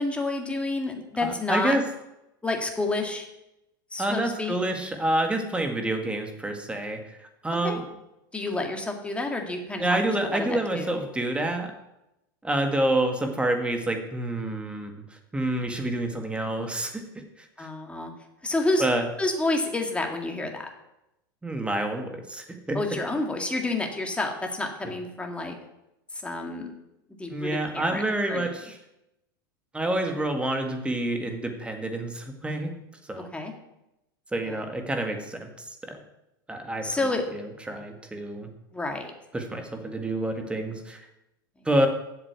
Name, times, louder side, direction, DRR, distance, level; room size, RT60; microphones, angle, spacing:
voice 1, 0.0-1.8 2.4-3.3 3.9-4.6 7.6-7.8 8.3-10.0 10.3-10.9 17.6-18.1 18.4-18.9 19.2-20.7 22.7-25.6 26.1-26.7 27.2-28.0 28.3-28.5 33.3-33.5 34.4-34.6 36.8-37.2 38.7-39.1, left 2 dB, 10° left, 3 dB, 2.0 m, -29 dB
voice 2, 1.2-1.8 4.0-7.2 7.4-7.8 9.8-11.7 12.4-14.9 15.3-17.0 17.6-17.7 18.8-19.1 21.4-22.8 27.3-28.8 29.7-32.7 33.1-33.3 34.3-35.5 35.9-36.0 36.5-36.9 37.7-38.5 39.3-41.1 41.7-41.9, right 1 dB, 10° right, 5 dB, 1.8 m, -28 dB
8.3 x 7.2 x 8.3 m, 0.90 s
hypercardioid pair, 105°, 11 cm